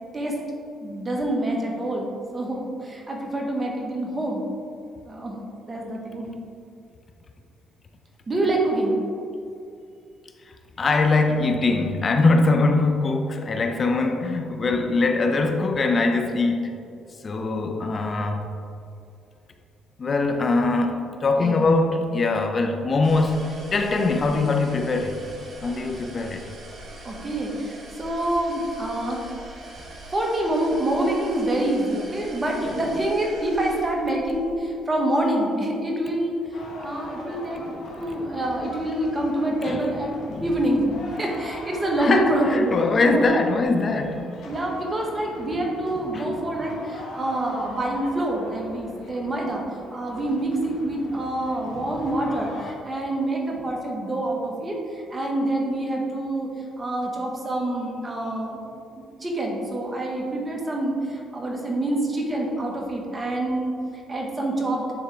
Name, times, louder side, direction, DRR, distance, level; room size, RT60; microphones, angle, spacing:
voice 1, 0.8-4.4 5.0-6.3 8.3-9.0 21.4-21.6 27.0-29.3 30.1-37.6 38.0-42.7 43.0-43.4 44.4-49.6 49.9-56.5 56.8-58.6 59.0-63.8 64.1-64.9, right 1 dB, 25° right, -1 dB, 1.3 m, -26 dB
voice 2, 10.8-16.8 17.2-18.5 20.0-25.3 25.6-26.4 39.6-39.9 40.3-40.5 42.0-44.2 46.1-46.2, left 3 dB, 40° left, 5 dB, 0.6 m, -22 dB
sound 1, 23.0-34.5, right 1 dB, 45° right, 1.2 m, -42 dB
sound 2, 36.5-52.7, left 1 dB, 75° left, 1.3 m, -40 dB
9.8 x 3.6 x 3.3 m, 2.5 s
cardioid pair, 85°, 0 cm